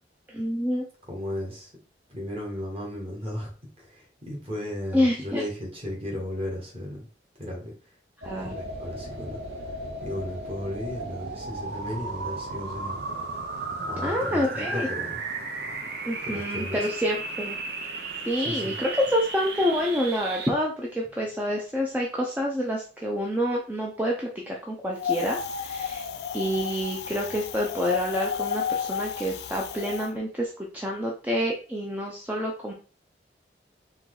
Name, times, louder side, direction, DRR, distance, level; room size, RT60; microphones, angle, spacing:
voice 1, 0.3-0.8 4.9-5.4 8.2-8.5 14.0-14.9 16.1-17.6 18.2-26.1 26.3-32.7, equal, 10° right, -2 dB, 0.5 m, -28 dB
voice 2, 1.1-1.7 2.1-3.5 3.8-7.1 7.4-7.7 8.4-9.4 10.0-13.0 13.9-15.2 16.2-16.8 18.4-18.8, left 1 dB, 30° right, -2 dB, 1.8 m, -35 dB
sound 1, 8.2-20.5, right 3 dB, 70° right, 0.9 m, -35 dB
Wind, 25.0-30.1, left 7 dB, 70° left, 0.4 m, -32 dB
4.4 x 3.0 x 3.8 m, 0.38 s
head